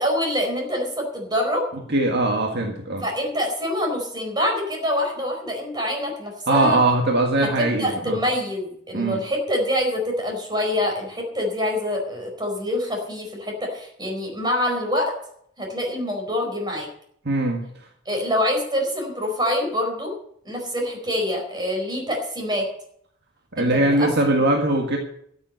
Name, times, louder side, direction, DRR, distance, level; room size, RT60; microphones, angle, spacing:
voice 1, 0.0-1.6 3.0-6.8 7.4-15.1 15.6-16.9 18.1-20.1 20.4-22.7 23.6-24.4, left 1 dB, 20° right, 1 dB, 4.6 m, -25 dB
voice 2, 1.9-3.0 6.5-8.2 8.9-9.2 17.3-17.6 23.6-25.0, right 2 dB, 55° right, 2 dB, 1.8 m, -21 dB
13.5 x 7.5 x 8.2 m, 0.68 s
head